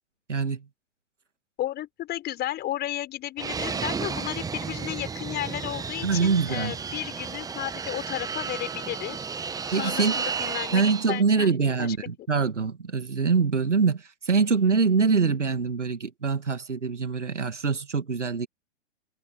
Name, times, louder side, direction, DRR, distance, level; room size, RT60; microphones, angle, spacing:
voice 1, 0.3-0.6 6.0-6.7 9.7-10.2 10.7-18.5, right 5 dB, 85° right, 2.6 m, -24 dB
voice 2, 1.6-9.2 9.7-11.5 11.8-12.0, left 13 dB, 30° left, 6.5 m, -33 dB
Fixed-wing aircraft airplane, 3.4-11.2, right 5 dB, 10° right, 1.2 m, -33 dB
figure-of-eight pair, 110°, 35 cm